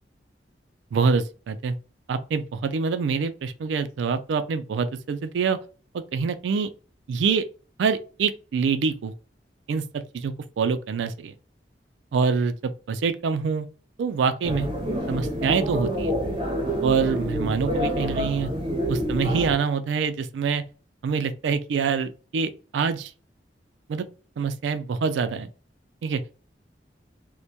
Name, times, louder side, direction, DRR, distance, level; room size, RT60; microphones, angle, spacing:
voice 1, 0.9-1.8 2.1-5.6 6.1-6.7 7.1-7.4 7.8-9.1 9.7-9.8 10.1-11.3 12.1-13.7 14.0-14.7 15.1-16.2 16.8-18.5 18.9-20.6 21.0-23.1 23.9-24.1 24.4-25.5 26.0-26.2, right 5 dB, 85° right, 0.3 m, -25 dB
sound 1, 14.4-19.5, equal, 30° right, 0.6 m, -27 dB
2.2 x 2.1 x 2.7 m
head